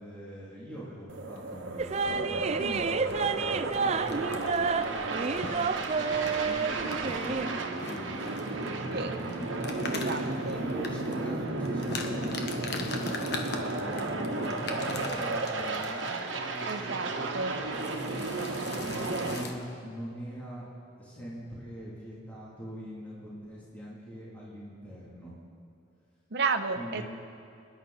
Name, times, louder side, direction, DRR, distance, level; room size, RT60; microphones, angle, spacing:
voice 1, 0.0-9.2 10.5-20.7 21.0-25.3 26.7-27.0, equal, 10° left, -9 dB, 3.3 m, -43 dB
sound 1, 1.1-19.4, right 2 dB, 75° right, 1.3 m, -33 dB
sound 2, 1.8-7.5, right 5 dB, 35° right, 0.4 m, -30 dB
sound 3, 3.1-16.3 16.7-16.9 17.1-17.4 17.7-19.5, left 3 dB, 55° left, 1.3 m, -41 dB
voice 2, 9.9-10.6 16.7-17.6 26.3-27.0, right 4 dB, 55° right, 7 dB, 0.9 m, -32 dB
25.0 x 11.0 x 4.3 m, 2.6 s
head